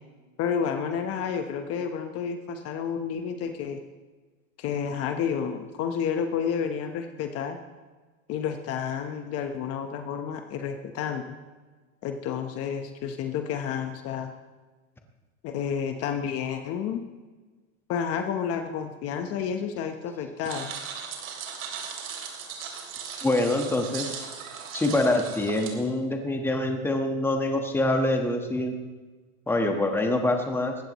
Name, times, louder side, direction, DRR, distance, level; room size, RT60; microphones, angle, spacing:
voice 1, 0.4-3.8 4.6-7.6 8.3-11.2 12.0-14.3 15.4-17.0 17.9-20.7, left 7 dB, 35° left, 6 dB, 1.1 m, -30 dB
sound 1, 20.4-25.7, right 7 dB, 85° right, 3.3 m, -38 dB
voice 2, 23.2-24.2 24.7-28.7 29.5-30.8, left 1 dB, 5° left, 4 dB, 1.4 m, -25 dB
21.0 x 15.5 x 3.1 m, 1.3 s
supercardioid pair, 140°, 41 cm